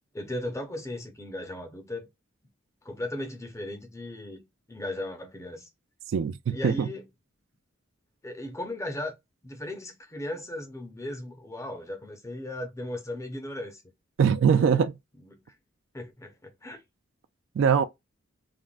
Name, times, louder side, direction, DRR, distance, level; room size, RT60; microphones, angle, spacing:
voice 1, 0.1-2.1 2.8-5.7 6.5-7.0 8.2-9.1 9.4-13.8 14.5-14.8 15.3-15.5 15.9-16.8, left 1 dB, 15° left, 0.5 m, -37 dB
voice 2, 6.1-6.9 14.2-14.9 17.6-17.8, right 7 dB, 65° right, 0.3 m, -22 dB
3.5 x 2.1 x 2.3 m
head